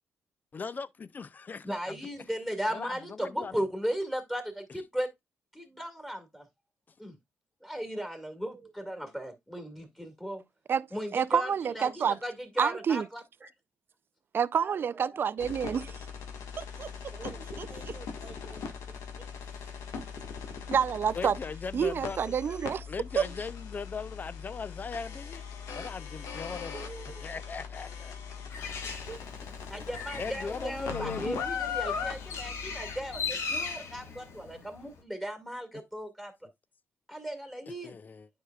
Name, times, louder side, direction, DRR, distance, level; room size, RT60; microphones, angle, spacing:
voice 1, 0.5-1.7 2.7-3.6 21.1-22.4 22.9-25.4 25.7-26.7 27.2-28.5 30.2-31.3 37.8-38.3, left 5 dB, 35° left, 0.5 m, -39 dB
voice 2, 1.6-5.1 5.5-6.5 7.0-7.2 7.6-10.4 10.9-13.2 29.7-36.3 37.1-38.0, equal, 5° left, 1.9 m, -36 dB
voice 3, 11.1-12.1 12.6-13.0 14.3-15.9 16.6-16.9 20.7-21.4 21.7-22.8 23.2-23.3, right 7 dB, 45° right, 0.3 m, -28 dB
voice 4, 14.5-15.2 15.7-15.9 17.1-19.3 22.5-22.8 26.7-27.3 28.6-29.2 30.5-31.5, right 3 dB, 25° right, 1.2 m, -49 dB
sound 1, 15.4-33.2, left 6 dB, 85° left, 1.5 m, -40 dB
Bird, 28.5-35.0, left 5 dB, 70° left, 1.5 m, -39 dB
9.6 x 4.8 x 2.3 m
cardioid pair, 90°, 5 cm